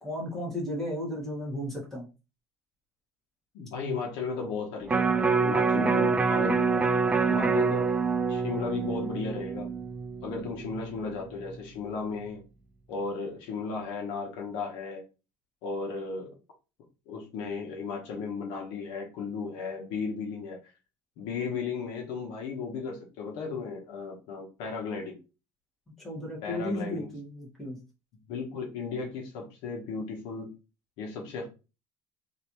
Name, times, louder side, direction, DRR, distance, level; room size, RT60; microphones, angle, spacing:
voice 1, 0.0-2.0 26.0-27.8, left 1 dB, 5° left, -4 dB, 1.7 m, -34 dB
voice 2, 3.5-6.8 7.3-7.9 8.3-9.7 10.2-12.4 12.9-15.0 15.6-16.3 17.1-20.6 21.2-25.2 26.4-27.1 28.3-30.5 31.0-31.5, left 4 dB, 75° left, 1 dB, 1.1 m, -35 dB
Electric guitar, 4.9-11.1 11.5-11.6, right 4 dB, 15° right, 0.3 m, -26 dB
3.2 x 2.7 x 3.0 m, 0.31 s
cardioid pair, 125°, 8 cm